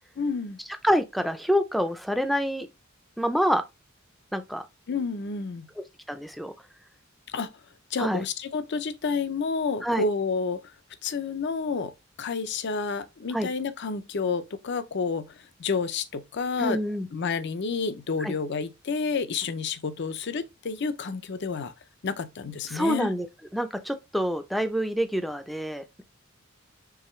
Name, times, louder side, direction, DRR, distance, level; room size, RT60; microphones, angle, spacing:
voice 1, 0.2-0.6 4.9-5.7 7.3-7.5 7.9-10.6 11.0-11.9 12.2-16.8 17.1-21.7 22.0-23.1, left 4 dB, 55° left, 0.5 m, -30 dB
voice 2, 0.8-2.7 3.2-3.6 4.3-4.6 6.1-6.5 8.0-8.2 9.8-10.0 13.3-13.5 16.6-17.1 18.2-18.3 22.7-23.3 23.5-26.0, equal, ahead, 0.5 m, -26 dB
4.8 x 3.2 x 3.1 m
head